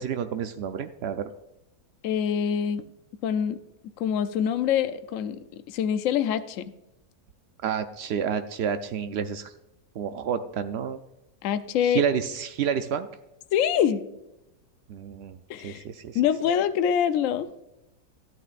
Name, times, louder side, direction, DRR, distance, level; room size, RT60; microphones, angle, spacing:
voice 1, 0.0-1.3 7.6-9.5 10.0-11.0 11.8-13.1 14.9-15.4 15.6-16.2, right 7 dB, 90° right, 9 dB, 0.5 m, -29 dB
voice 2, 2.0-2.8 3.2-3.6 4.0-6.7 11.4-12.0 13.5-14.0 15.5-15.8 16.1-17.5, left 9 dB, 65° left, 11 dB, 0.9 m, -25 dB
13.5 x 9.1 x 2.5 m, 0.91 s
omnidirectional pair, 1.7 m